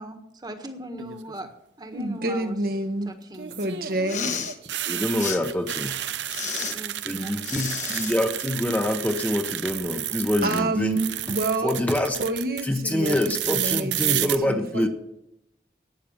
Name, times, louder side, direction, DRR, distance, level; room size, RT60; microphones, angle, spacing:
voice 1, 0.0-1.5 1.8-2.6 3.0-3.8 6.5-7.3, right 1 dB, 25° right, 1.4 m, -39 dB
sound 1, 1.0-1.5 3.3-10.6 10.9-12.6 13.1-14.4, right 12 dB, 90° right, 0.7 m, -31 dB
voice 2, 1.9-3.1 3.6-4.4 10.4-11.8 12.2-14.9, right 2 dB, 55° right, 1.2 m, -28 dB
Respiratory sounds, 3.9-4.6 5.2-5.4 6.3-6.7 7.4-8.2, left 7 dB, 45° left, 1.2 m, -31 dB
voice 3, 4.9-6.0 7.0-11.0 11.6-12.2 12.6-14.9, left 1 dB, 10° left, 0.9 m, -25 dB
12.0 x 9.3 x 7.3 m
head